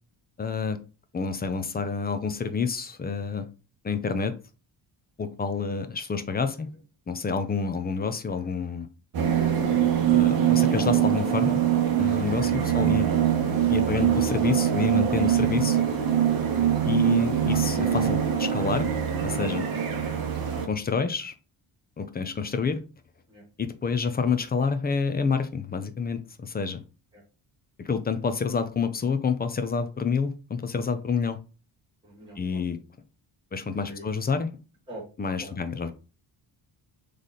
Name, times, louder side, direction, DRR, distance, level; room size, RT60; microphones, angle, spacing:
voice 1, 0.4-0.8 1.1-3.5 3.8-4.3 5.2-6.7 7.1-8.9 10.1-11.6 12.0-13.1 13.7-15.8 16.9-18.9 19.2-19.7 20.6-21.3 22.0-22.8 23.6-26.8 27.8-31.4 32.4-32.8 33.5-34.6 35.2-35.9, left 5 dB, 20° left, 9 dB, 0.3 m, -28 dB
sound 1, 9.1-20.7, right 10 dB, 45° right, 1.0 m, -23 dB
voice 2, 32.0-32.6 33.7-34.1 34.9-35.0 35.4-35.5, right 1 dB, 10° right, -6 dB, 2.4 m, -45 dB
4.1 x 3.3 x 3.7 m, 0.33 s
wide cardioid pair, 165°, 48 cm